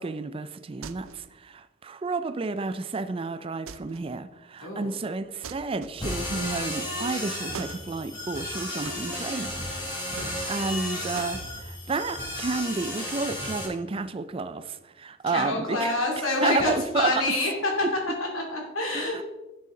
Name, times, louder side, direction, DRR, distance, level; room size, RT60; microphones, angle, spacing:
voice 1, 0.0-10.1 10.5-17.1 18.9-19.2, right 3 dB, 25° right, 0.4 m, -31 dB
sound 1, 0.8-1.3 3.7-4.1 5.4-6.2 7.5-7.9 8.8-9.5 10.2-10.8 11.2-11.4, right 6 dB, 80° right, 0.5 m, -42 dB
sound 2, 6.0-13.7, left 1 dB, 20° left, 2.8 m, -33 dB
voice 2, 15.3-17.7 18.2-19.2, left 2 dB, 85° left, 2.7 m, -27 dB
11.5 x 6.7 x 3.8 m
head